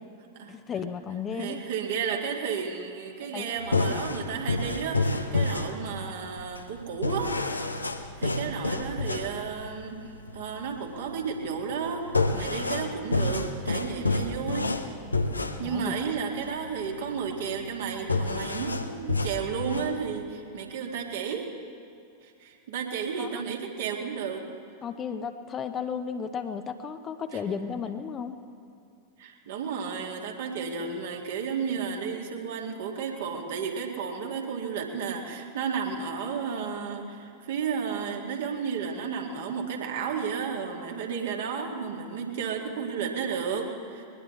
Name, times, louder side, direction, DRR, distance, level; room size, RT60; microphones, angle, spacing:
voice 1, 0.5-1.6 3.3-3.8 15.6-16.0 23.2-23.4 24.8-28.4, left 6 dB, 25° left, 9 dB, 0.9 m, -34 dB
voice 2, 1.3-7.4 8.2-10.0 10.3-14.8 15.6-21.5 22.2-24.4 27.3-27.4 29.2-44.1, right 6 dB, 55° right, 1 dB, 2.2 m, -32 dB
sound 1, 3.6-20.1, left 3 dB, 80° left, 0.9 m, -30 dB
21.5 x 20.0 x 3.2 m, 2.6 s
figure-of-eight pair, 90°, 0 cm